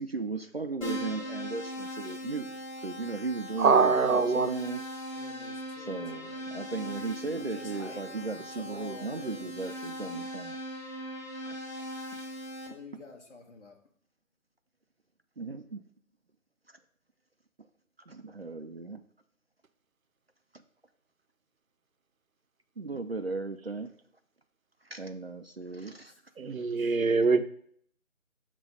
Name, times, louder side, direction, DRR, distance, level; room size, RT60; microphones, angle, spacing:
voice 1, 0.0-4.8 5.8-10.6 11.4-11.6 12.1-12.2 12.9-13.0 15.4-15.8 16.7-16.8 18.1-19.0 22.8-23.9 24.8-26.1, right 3 dB, 50° right, 8 dB, 0.5 m, -36 dB
Keyboard (musical), 0.8-12.7, equal, 25° left, 3.1 m, -40 dB
voice 2, 3.6-4.5 26.4-27.4, right 4 dB, 75° right, 11 dB, 0.7 m, -23 dB
voice 3, 5.1-6.5 7.4-9.5 12.7-13.8 25.8-25.9 26.4-26.9, left 3 dB, 55° left, 1 dB, 1.9 m, -49 dB
8.3 x 3.0 x 5.4 m, 0.62 s
figure-of-eight pair, 160°, 42 cm